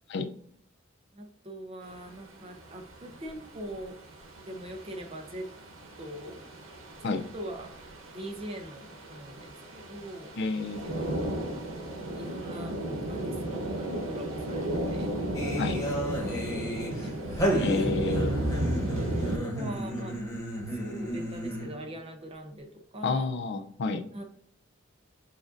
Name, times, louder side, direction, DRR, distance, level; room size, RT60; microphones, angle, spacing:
voice 1, 1.1-4.0 4.4-5.5 6.0-6.5 7.0-7.7 8.1-10.3 10.8-11.4 12.0-12.8 13.1-15.1 15.6-17.3 19.0-20.2 20.6-23.3 24.1-24.2, right 1 dB, 30° right, 4 dB, 0.7 m, -42 dB
sound 1, 1.8-19.4, right 1 dB, 90° right, 1.0 m, -34 dB
voice 2, 10.4-10.8 15.6-15.8 17.6-18.4 23.0-24.0, left 3 dB, 60° left, 8 dB, 0.4 m, -30 dB
sound 2, 15.3-21.9, equal, 15° left, 1.3 m, -32 dB
7.0 x 2.5 x 2.5 m, 0.66 s
head